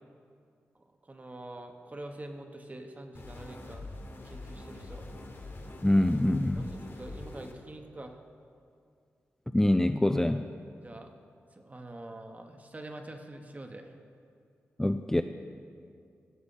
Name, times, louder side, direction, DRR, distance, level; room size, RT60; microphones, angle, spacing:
voice 1, 1.0-3.9 4.2-5.1 6.5-8.2 10.8-11.1 11.5-13.9, right 1 dB, 30° right, 4 dB, 1.2 m, -45 dB
sound 1, 3.1-7.5, left 2 dB, 55° left, 1.6 m, -44 dB
voice 2, 5.8-6.7 9.5-10.4 14.8-15.2, left 1 dB, 10° left, 7 dB, 0.4 m, -25 dB
16.5 x 7.1 x 4.3 m, 2.3 s
cardioid pair, 55°, 5 cm